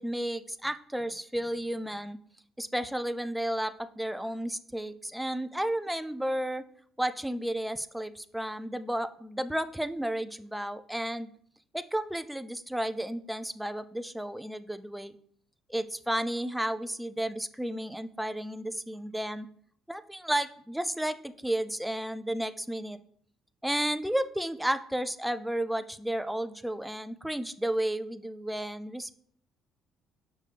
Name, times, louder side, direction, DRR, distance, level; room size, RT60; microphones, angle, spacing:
voice 1, 0.0-2.2 2.6-6.6 7.0-11.3 11.7-15.2 15.7-19.5 19.9-23.0 23.6-29.1, right 1 dB, 5° right, 11 dB, 0.3 m, -32 dB
6.4 x 5.4 x 3.3 m, 0.62 s
cardioid pair, 125°, 0 cm